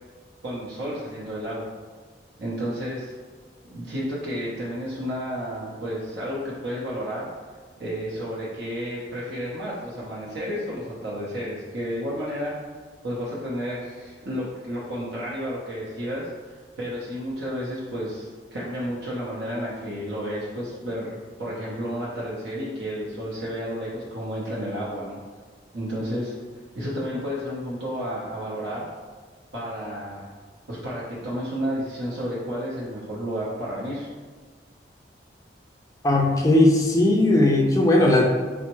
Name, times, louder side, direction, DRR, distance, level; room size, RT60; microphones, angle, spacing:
voice 1, 0.4-1.6 2.4-3.1 3.7-7.3 7.8-12.5 13.0-25.2 25.7-26.3 26.8-28.8 29.5-30.3 30.7-34.1, equal, 80° right, -7 dB, 0.7 m, -31 dB
voice 2, 36.0-38.3, left 1 dB, 20° left, 0 dB, 0.3 m, -18 dB
4.4 x 2.0 x 2.9 m, 1.5 s
head